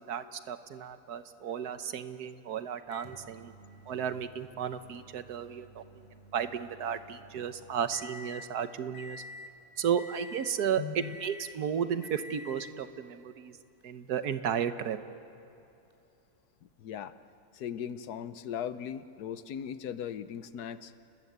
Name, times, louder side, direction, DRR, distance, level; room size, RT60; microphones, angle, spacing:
voice 1, 0.0-3.5 3.9-5.8 6.3-9.2 9.8-13.6 13.8-15.0, right 8 dB, 80° right, 10 dB, 1.5 m, -33 dB
Microwave oven, 2.9-8.5 8.9-9.6 10.0-10.6 11.0-11.6 12.0-12.8 13.8-13.9 15.9-16.0, left 1 dB, 25° left, 3.8 m, -50 dB
voice 2, 10.8-11.2 16.8-17.1 17.5-20.9, left 9 dB, 80° left, 13 dB, 1.4 m, -38 dB
29.5 x 20.0 x 8.0 m, 2.8 s
omnidirectional pair, 1.7 m